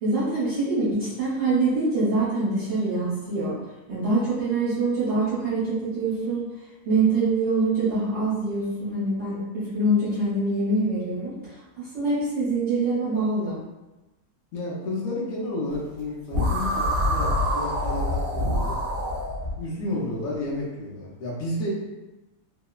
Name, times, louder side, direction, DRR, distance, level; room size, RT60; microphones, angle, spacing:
voice 1, 0.0-3.6 3.9-6.5 6.8-13.6, right 2 dB, 55° right, -12 dB, 1.0 m, -25 dB
voice 2, 14.5-18.8 19.5-21.7, left 1 dB, 70° left, -5 dB, 1.0 m, -31 dB
sound 1, 16.3-19.5, left 1 dB, 75° right, 0.4 m, -25 dB
2.9 x 2.0 x 2.3 m, 1.1 s
omnidirectional pair, 1.6 m